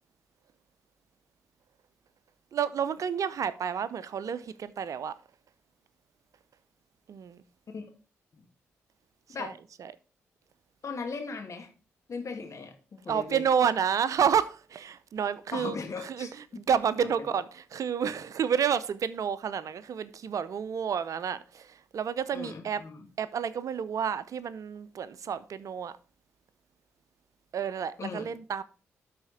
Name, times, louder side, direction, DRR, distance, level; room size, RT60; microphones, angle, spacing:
voice 1, 2.5-5.2 7.1-7.4 9.4-9.5 9.8-9.9 13.1-15.8 16.0-16.3 16.6-22.8 23.2-25.9 27.5-28.6, right 7 dB, 60° right, 0.6 m, -30 dB
voice 2, 10.8-11.7 12.1-13.5 15.5-16.6 22.3-23.1 28.0-28.2, left 4 dB, 55° left, 2.2 m, -38 dB
12.5 x 4.2 x 4.2 m
hypercardioid pair, 40°, 6 cm